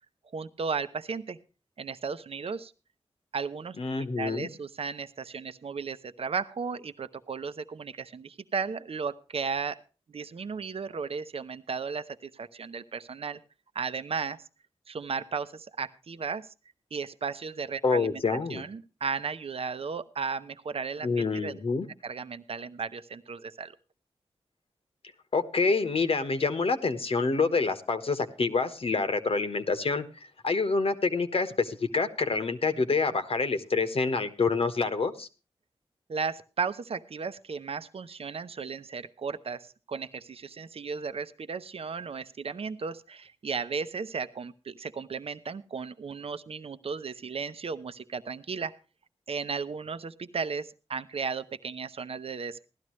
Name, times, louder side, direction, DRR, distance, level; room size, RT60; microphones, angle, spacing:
voice 1, 0.3-1.4 1.8-2.7 3.3-3.8 4.2-9.8 10.1-13.4 13.7-14.4 14.9-16.5 16.9-18.2 18.5-21.6 22.0-23.7 36.1-48.7 49.3-52.6, right 5 dB, 65° right, 12 dB, 0.7 m, -35 dB
voice 2, 3.8-4.5 17.8-18.6 21.0-21.9 25.3-35.3, left 4 dB, 65° left, 10 dB, 1.3 m, -27 dB
16.5 x 12.5 x 3.1 m, 0.33 s
wide cardioid pair, 65°, 11 cm